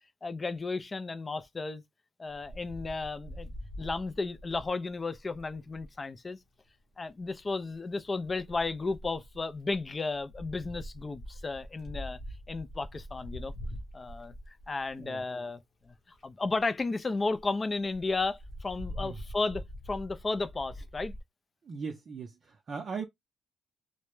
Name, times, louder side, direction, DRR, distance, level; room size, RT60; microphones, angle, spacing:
voice 1, 0.2-1.8 2.2-3.5 3.8-6.4 7.0-12.2 12.5-13.5 13.9-14.3 14.7-15.6 15.9-16.0 16.2-21.1, left 3 dB, 30° left, 0.4 m, -33 dB
Wind, 2.4-6.0 7.1-7.5 8.2-15.2 15.8-15.9 16.1-16.2 16.6-16.7 17.0-17.1 17.3-17.4 17.9-21.2, equal, 50° left, 0.8 m, -44 dB
voice 2, 21.6-23.0, right 5 dB, 45° right, 0.5 m, -39 dB
2.1 x 2.0 x 3.0 m
cardioid pair, 90°, 0 cm